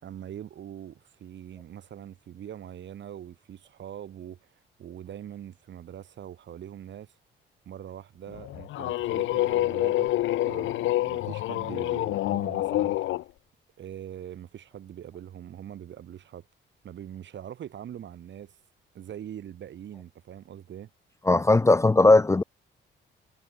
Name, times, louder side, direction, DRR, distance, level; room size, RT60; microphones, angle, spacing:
voice 1, 0.0-4.5 4.8-7.1 7.7-10.1 10.5-13.1 13.8-16.4 16.8-18.6 18.9-20.9, right 10 dB, 65° right, 5.2 m, -42 dB
sound 1, 8.3-13.2, left 16 dB, 80° left, 0.6 m, -27 dB
voice 2, 21.2-22.4, left 2 dB, 15° left, 0.5 m, -18 dB
cardioid pair, 90°, 20 cm